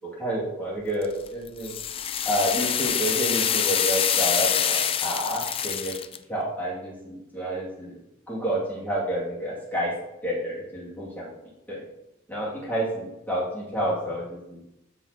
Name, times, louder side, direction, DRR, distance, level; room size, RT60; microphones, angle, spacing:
voice 1, 0.2-1.7 2.2-5.9 6.3-8.0 8.3-9.9 10.2-11.3 11.7-11.9 12.3-14.6, right 1 dB, 10° left, -7 dB, 2.2 m, -29 dB
sound 1, 1.0-6.2, left 9 dB, 25° left, 0.3 m, -25 dB
12.5 x 4.4 x 2.8 m, 0.89 s
head